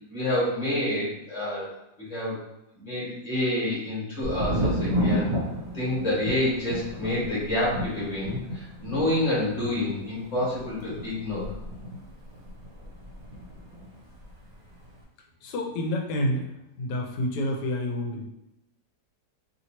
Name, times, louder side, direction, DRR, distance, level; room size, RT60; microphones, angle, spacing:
voice 1, 0.1-1.7 2.0-2.4 2.8-5.4 5.7-11.4, left 1 dB, 25° left, -7 dB, 1.5 m, -28 dB
Thunder, 4.2-13.9 14.1-14.9, equal, 75° right, 1.3 m, -32 dB
voice 2, 15.4-18.3, left 1 dB, 90° left, 1 dB, 1.3 m, -29 dB
3.2 x 2.8 x 2.9 m, 0.87 s
omnidirectional pair, 1.8 m